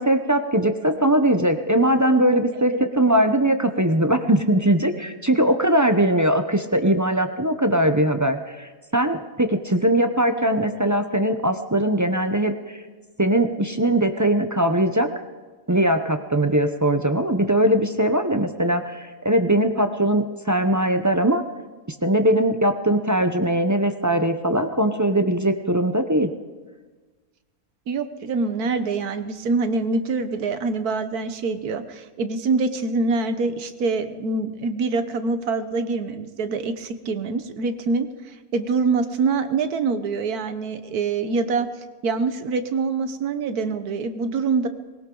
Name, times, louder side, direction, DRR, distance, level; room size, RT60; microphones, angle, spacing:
voice 1, 0.0-12.8 13.2-15.1 15.7-21.4 22.0-26.3, right 1 dB, 20° right, 7 dB, 0.5 m, -20 dB
voice 2, 27.9-41.7 42.0-44.7, right 4 dB, 85° right, 10 dB, 1.5 m, -25 dB
20.5 x 18.0 x 3.9 m, 1.4 s
omnidirectional pair, 1.6 m